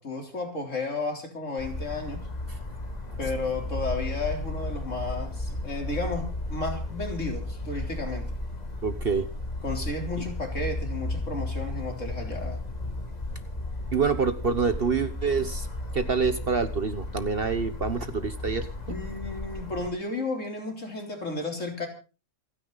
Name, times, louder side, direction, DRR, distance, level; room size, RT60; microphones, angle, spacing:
voice 1, 0.0-2.2 3.2-8.3 9.6-12.6 18.9-21.9, left 2 dB, 60° left, 2 dB, 4.1 m, -33 dB
sound 1, 1.6-19.9, left 2 dB, 30° left, 1.9 m, -34 dB
voice 2, 8.8-9.3 13.9-15.7 15.9-18.7, right 5 dB, 45° right, 11 dB, 1.1 m, -26 dB
27.5 x 9.9 x 4.0 m, 0.34 s
omnidirectional pair, 1.5 m